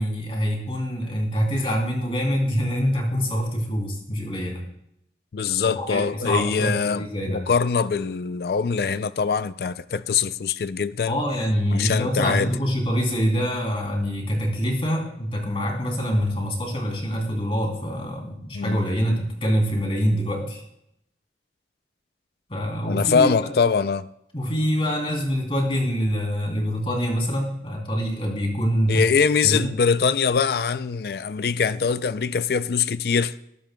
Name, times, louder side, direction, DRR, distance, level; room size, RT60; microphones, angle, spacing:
voice 1, 0.0-4.6 5.6-7.5 11.1-20.6 22.5-23.5 24.3-29.1 29.4-29.7, equal, 30° left, 3.2 m, -25 dB
voice 2, 5.3-11.2 11.7-12.5 18.5-18.8 22.9-24.1 28.9-33.3, left 5 dB, 60° left, 0.4 m, -23 dB
19.0 x 14.0 x 2.3 m
head